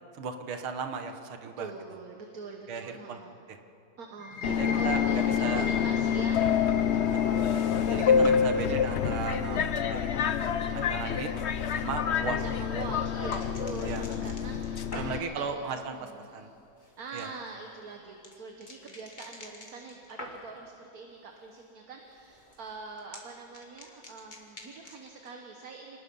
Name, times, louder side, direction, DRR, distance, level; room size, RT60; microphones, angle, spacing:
voice 1, 0.2-1.7 2.7-3.2 4.6-5.7 7.3-7.6 7.9-9.6 9.9-10.1 10.7-11.3 11.8-12.4 13.8-14.0 14.9-16.5 17.1-17.3, right 5 dB, 85° right, 6 dB, 2.0 m, -36 dB
voice 2, 1.6-3.4 4.0-7.0 7.2-7.5 12.4-16.5 16.8-26.0, right 4 dB, 50° right, 2 dB, 1.6 m, -44 dB
sound 1, 4.2-11.6, left 5 dB, 70° left, 2.4 m, -41 dB
Subway metro underground, 4.4-15.2, left 7 dB, 90° left, 0.6 m, -27 dB
sound 2, 12.2-20.7 21.1-21.6 21.9-25.3, left 1 dB, 25° left, 1.9 m, -49 dB
26.5 x 19.0 x 5.5 m, 2.6 s
omnidirectional pair, 2.2 m